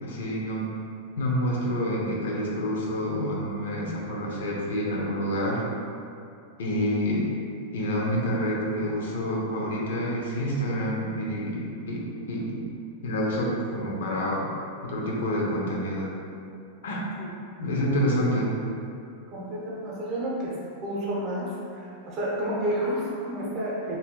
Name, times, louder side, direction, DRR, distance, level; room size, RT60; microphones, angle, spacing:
voice 1, 0.0-0.7 1.2-5.6 6.6-7.3 7.7-12.6 13.0-14.5 14.8-16.1 16.8-17.0 17.6-18.5, equal, 85° left, -3 dB, 0.7 m, -28 dB
voice 2, 19.3-20.5 20.8-21.5 22.1-24.0, right 1 dB, 30° right, -5 dB, 0.7 m, -30 dB
4.1 x 2.7 x 2.2 m, 2.5 s
supercardioid pair, 165°, 0 cm